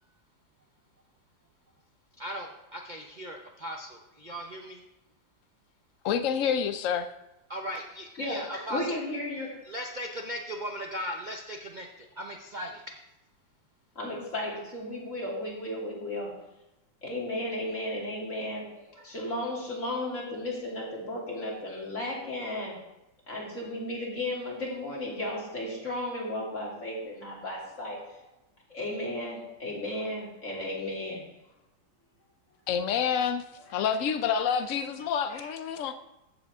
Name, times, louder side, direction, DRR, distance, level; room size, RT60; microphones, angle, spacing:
voice 1, 2.2-4.8 6.4-6.5 7.5-9.0 9.7-12.8, equal, 80° right, 2 dB, 0.4 m, -38 dB
voice 2, 6.0-7.1 32.7-33.4 33.7-35.9, left 7 dB, 85° left, 9 dB, 0.7 m, -28 dB
voice 3, 8.2-9.6 13.9-16.4 17.0-22.8 23.3-28.2 28.7-31.2 33.6-33.9 35.3-35.5, left 1 dB, 40° left, -4 dB, 3.1 m, -34 dB
14.5 x 7.2 x 3.5 m, 0.93 s
omnidirectional pair, 2.0 m